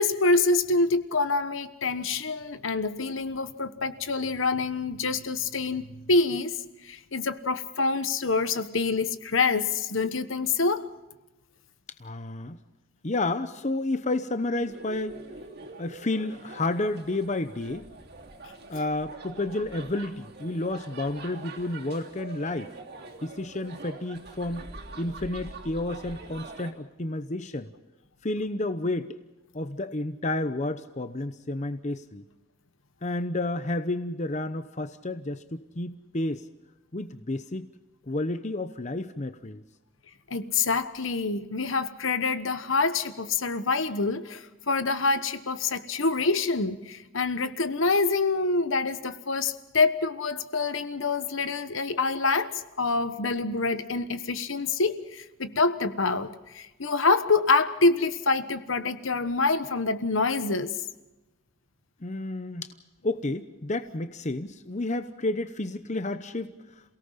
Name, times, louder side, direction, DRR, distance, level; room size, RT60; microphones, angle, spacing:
voice 1, 0.0-6.6 6.8-10.9 40.3-60.7, left 3 dB, 65° left, 11 dB, 1.3 m, -26 dB
voice 2, 12.0-12.6 13.0-15.2 15.8-17.9 18.7-22.7 23.2-24.7 25.0-27.7 28.2-29.2 29.5-32.2 33.0-36.4 36.9-37.7 38.1-39.6 62.0-62.7 63.0-66.5, left 2 dB, 35° left, 10 dB, 0.9 m, -31 dB
sound 1, 14.6-26.7, right 3 dB, 50° right, 3.2 m, -44 dB
28.5 x 18.0 x 5.7 m, 1.0 s
head